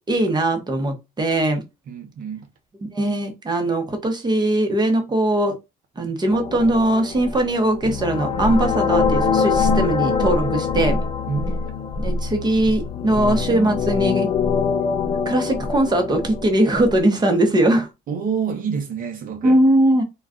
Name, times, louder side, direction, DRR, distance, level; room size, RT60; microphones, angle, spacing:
voice 1, 0.1-1.6 2.8-5.5 6.0-11.0 12.0-14.3 15.3-17.9 19.4-20.0, right 1 dB, 25° right, 0.9 m, -20 dB
voice 2, 1.9-2.5 10.4-10.5 11.3-11.6 18.1-19.6, right 6 dB, 55° right, 0.7 m, -27 dB
sound 1, 6.3-17.0, left 5 dB, 35° left, 0.4 m, -23 dB
2.3 x 2.3 x 3.6 m
cardioid pair, 110°, 17 cm